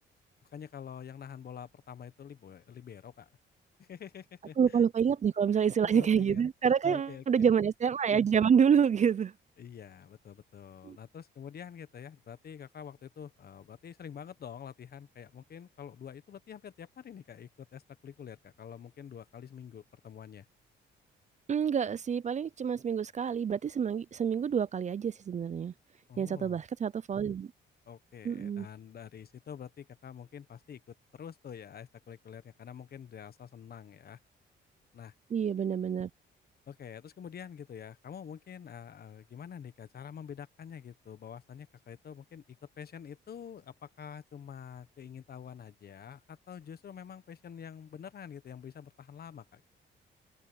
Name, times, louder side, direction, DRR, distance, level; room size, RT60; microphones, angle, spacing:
voice 1, 0.5-3.3 3.8-4.8 5.8-6.4 6.8-7.5 9.6-20.5 26.1-26.6 27.9-30.8 31.1-34.2 34.9-35.1 36.7-49.6, left 8 dB, 50° left, 1.3 m, -47 dB
voice 2, 4.6-9.3 10.8-11.0 21.5-25.7 26.2-27.5 28.2-28.7 35.3-36.1, right 7 dB, 35° right, 0.5 m, -27 dB
cardioid pair, 90°, 20 cm